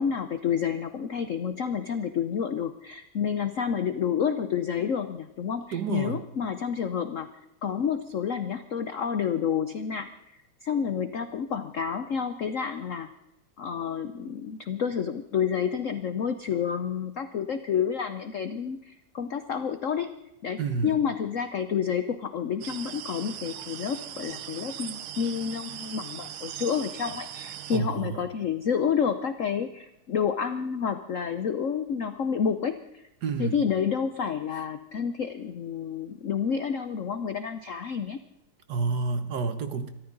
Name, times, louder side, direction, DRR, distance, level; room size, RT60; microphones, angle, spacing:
voice 1, 0.0-7.3 7.6-10.1 10.6-13.1 13.6-20.1 20.4-33.0 33.4-38.2, left 7 dB, 80° left, 10 dB, 0.7 m, -29 dB
voice 2, 5.7-6.2 20.6-21.0 27.7-28.2 33.2-33.6 38.7-39.9, right 5 dB, 55° right, 10 dB, 1.4 m, -29 dB
sound 1, 22.6-27.8, right 10 dB, 75° right, 1.7 m, -39 dB
24.5 x 13.5 x 3.9 m, 0.85 s
omnidirectional pair, 2.4 m